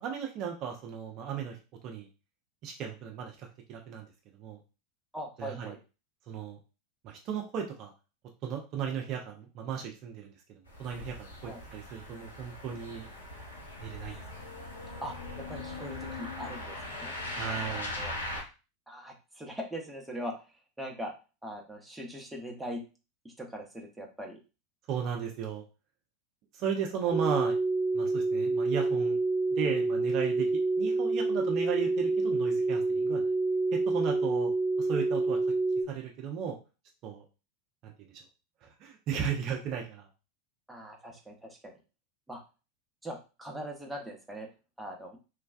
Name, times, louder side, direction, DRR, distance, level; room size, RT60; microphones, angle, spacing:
voice 1, 0.0-1.6 1.8-2.1 2.6-4.1 4.4-4.6 5.4-5.7 6.3-6.6 7.0-7.9 8.4-13.1 13.8-14.1 17.4-18.0 24.9-25.6 26.5-27.5 27.9-29.2 29.5-33.3 33.7-34.5 34.8-35.4 35.9-36.6 37.0-37.2 37.8-38.1 38.6-40.0, right 7 dB, 45° right, 1 dB, 0.5 m, -35 dB
voice 2, 5.1-5.8 11.4-11.6 14.1-14.2 15.0-18.4 18.9-20.4 20.8-21.1 21.4-22.8 23.2-24.4 27.0-27.1 40.7-41.8 42.3-42.4 43.0-44.5 44.8-45.2, equal, 5° right, -1 dB, 0.8 m, -41 dB
sound 1, 10.7-18.4, left 2 dB, 80° left, 0.8 m, -40 dB
sound 2, 27.1-35.8, right 3 dB, 25° left, 0.8 m, -28 dB
3.1 x 2.2 x 2.4 m, 0.31 s
figure-of-eight pair, 85°, 0 cm